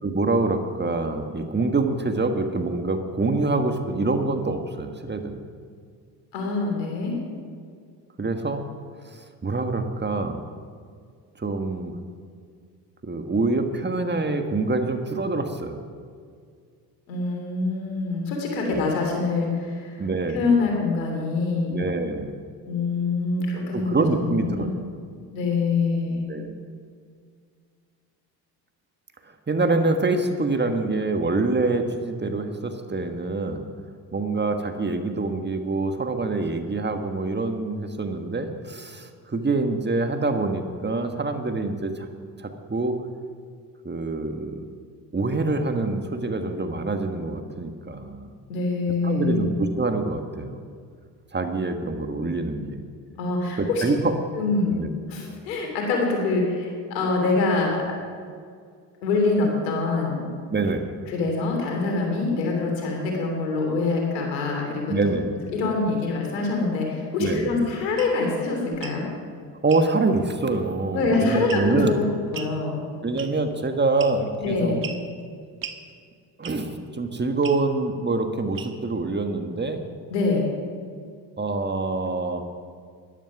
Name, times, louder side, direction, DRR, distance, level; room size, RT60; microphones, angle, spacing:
voice 1, 0.0-5.4 8.2-8.6 9.4-10.4 11.4-11.9 13.0-15.8 18.6-18.9 20.0-20.4 21.7-22.4 23.4-23.5 23.7-24.7 26.3-26.5 29.5-33.6 34.1-42.1 42.4-43.0 43.8-44.7 45.1-48.3 49.0-50.6 51.3-52.8 53.6-54.1 54.7-54.9 60.5-60.9 64.9-65.3 67.2-67.5 69.6-72.0 73.0-74.8 76.4-79.8 81.4-82.5, right 3 dB, 20° right, 6 dB, 1.5 m, -25 dB
voice 2, 6.3-7.1 17.1-20.0 20.3-21.8 22.6-23.9 24.2-24.7 25.3-26.2 48.5-49.4 53.2-53.8 54.4-54.7 55.1-57.8 59.0-60.3 61.1-65.2 65.5-69.0 70.9-72.0 72.3-72.8 74.4-74.9 80.1-80.5, left 3 dB, 90° left, 1 dB, 3.1 m, -25 dB
sound 1, 68.0-68.1 68.7-69.0 69.7-69.9 71.5-71.8 72.3-72.6 73.2-73.5 74.0-74.4 74.8-75.0 75.6-75.8 76.4-76.7 77.4-77.6 78.5-78.9, right 7 dB, 40° right, 1.4 m, -37 dB
13.0 x 11.5 x 5.9 m, 2.1 s
hypercardioid pair, 65°, 49 cm